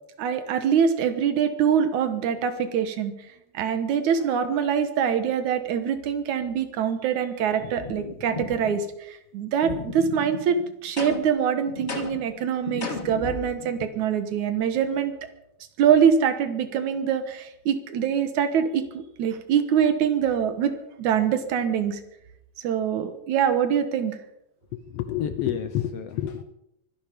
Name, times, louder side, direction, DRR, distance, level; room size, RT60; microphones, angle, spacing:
voice 1, 0.2-3.1 3.5-15.1 15.8-22.0 22.6-24.2, right 8 dB, 75° right, 10 dB, 2.7 m, -24 dB
sound 1, 7.6-8.8 9.6-11.2 11.7-13.8, left 2 dB, 45° left, 0.5 m, -37 dB
sound 2, 11.0-11.4 11.9-12.3 12.8-13.2, left 3 dB, 30° left, 1.5 m, -33 dB
voice 2, 24.9-26.4, left 10 dB, 70° left, 11 dB, 1.6 m, -28 dB
24.0 x 11.0 x 5.2 m, 0.80 s
omnidirectional pair, 3.5 m